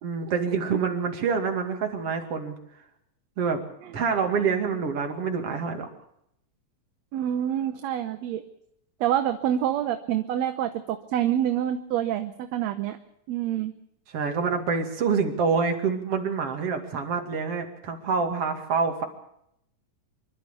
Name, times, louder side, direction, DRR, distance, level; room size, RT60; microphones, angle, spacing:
voice 1, 0.0-2.5 3.4-3.6 3.9-5.9 14.1-19.1, right 5 dB, 55° right, 4 dB, 3.3 m, -26 dB
voice 2, 7.1-8.4 9.0-13.0 13.3-13.7, right 11 dB, 70° right, 8 dB, 2.0 m, -27 dB
25.5 x 12.5 x 8.4 m, 0.76 s
omnidirectional pair, 3.3 m